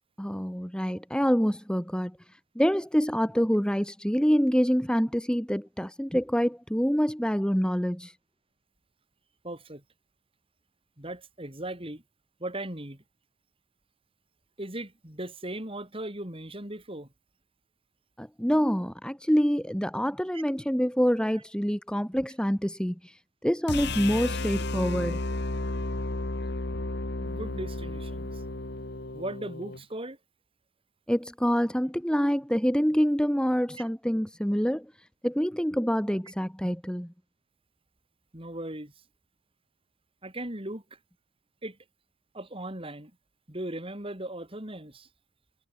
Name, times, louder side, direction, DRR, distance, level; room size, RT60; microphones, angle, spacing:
voice 1, 0.2-8.2 18.2-25.2 31.1-37.1, equal, 5° left, 2.7 m, -26 dB
voice 2, 9.4-9.8 11.0-12.0 12.4-13.0 14.6-17.1 20.3-20.4 27.2-28.4 29.1-30.2 38.3-38.9 40.2-41.0 41.6-41.8 42.3-43.1 43.5-45.1, right 1 dB, 25° right, 3.8 m, -38 dB
sound 1, 23.7-29.8, left 2 dB, 55° left, 1.8 m, -33 dB
head